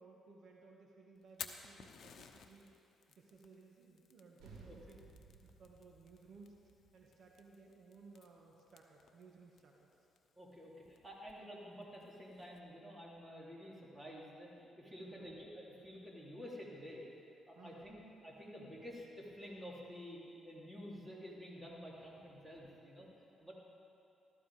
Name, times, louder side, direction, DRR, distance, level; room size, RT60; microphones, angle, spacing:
voice 1, 0.0-2.7 3.1-5.0 5.4-10.1 15.0-15.3 17.5-18.0, right 4 dB, 60° right, -1 dB, 1.5 m, -60 dB
Fire, 1.2-12.6, left 7 dB, 60° left, 1.0 m, -57 dB
sound 1, 4.4-9.2, right 3 dB, 85° right, 3.2 m, -60 dB
voice 2, 10.4-17.1 17.5-23.5, equal, 15° right, -4 dB, 3.3 m, -50 dB
14.5 x 13.5 x 5.0 m, 2.7 s
cardioid pair, 90°, 0 cm